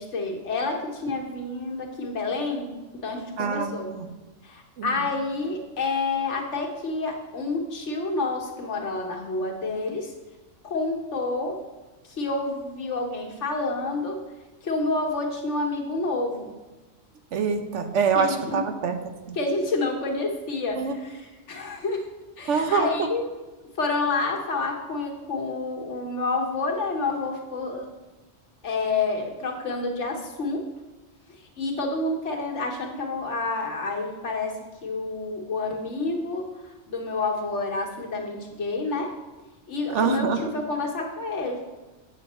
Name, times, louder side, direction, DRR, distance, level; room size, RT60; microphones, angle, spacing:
voice 1, 0.0-3.9 4.4-10.1 10.6-11.6 12.0-14.2 14.6-16.5 18.1-18.6 19.3-22.0 22.4-23.3 23.8-27.9 28.6-30.6 31.3-39.1 39.7-41.6, left 3 dB, 90° left, 1 dB, 1.6 m, -29 dB
voice 2, 3.4-3.7 4.8-4.9 17.3-18.3 18.5-18.9 19.3-19.4 20.8-20.9 22.5-22.9 39.9-40.4, right 6 dB, 85° right, 7 dB, 1.1 m, -24 dB
8.4 x 6.4 x 4.3 m, 1.1 s
omnidirectional pair, 1.2 m